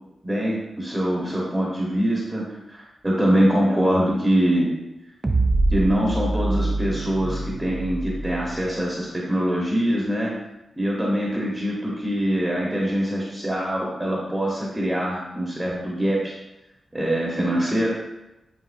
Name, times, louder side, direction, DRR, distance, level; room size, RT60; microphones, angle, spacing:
voice 1, 0.2-4.7 5.7-10.3 10.8-16.4 16.9-17.9, equal, 10° right, -4 dB, 1.1 m, -23 dB
sound 1, 5.2-8.7, right 2 dB, 25° right, 0.5 m, -25 dB
8.4 x 4.4 x 2.6 m, 0.96 s
wide cardioid pair, 120°, 0 cm